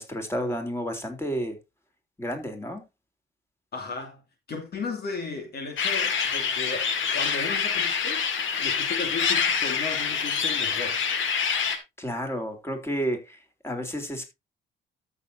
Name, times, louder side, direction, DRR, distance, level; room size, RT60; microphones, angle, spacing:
voice 1, 0.0-1.6 2.2-2.8 12.0-14.3, equal, 15° left, 3.6 m, -31 dB
voice 2, 3.7-8.3 8.6-11.0, left 4 dB, 55° left, 2.6 m, -35 dB
sound 1, 5.8-11.8, left 6 dB, 80° left, 2.1 m, -26 dB
13.5 x 7.2 x 2.7 m
cardioid pair, 90°, 20 cm